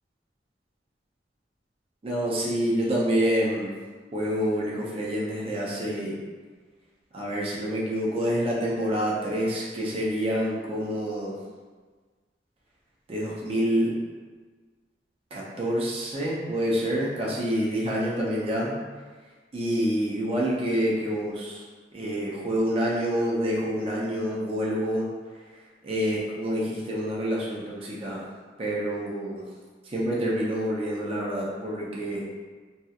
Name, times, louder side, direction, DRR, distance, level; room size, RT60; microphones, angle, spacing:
voice 1, 2.0-3.7 4.1-6.1 7.1-11.4 13.1-13.9 15.3-18.8 19.5-21.6 21.9-25.1 25.8-28.2 28.6-29.4 29.8-32.2, equal, 30° right, -5 dB, 0.4 m, -27 dB
2.7 x 2.3 x 2.3 m, 1.4 s
head